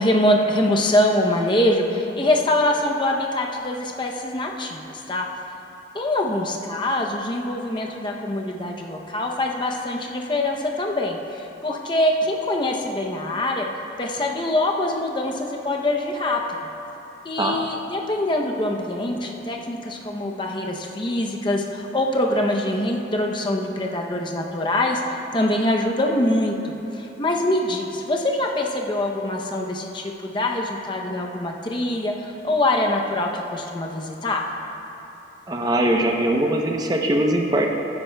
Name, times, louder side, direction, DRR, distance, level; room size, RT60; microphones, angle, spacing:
voice 1, 0.0-4.8 5.1-5.3 5.9-13.7 14.0-16.4 17.2-26.6 26.9-34.5, left 1 dB, 25° left, 1 dB, 0.6 m, -24 dB
voice 2, 35.5-37.7, right 1 dB, 20° right, 1 dB, 0.7 m, -21 dB
15.5 x 9.9 x 2.2 m, 3.0 s
head